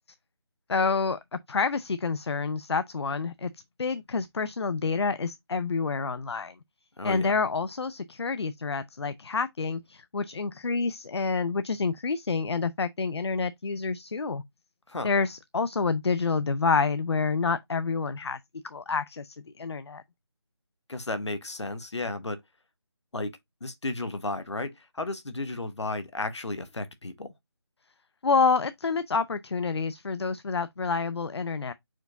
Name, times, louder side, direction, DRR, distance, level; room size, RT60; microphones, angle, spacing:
voice 1, 0.7-3.5 3.8-6.5 7.0-14.4 15.0-18.4 18.6-20.0 28.2-31.7, left 4 dB, 65° left, 0.5 m, -28 dB
voice 2, 7.0-7.4 14.9-15.1 20.9-22.4 23.1-27.3, left 2 dB, 85° left, 1.1 m, -33 dB
4.6 x 4.5 x 2.6 m
figure-of-eight pair, 175°, 14 cm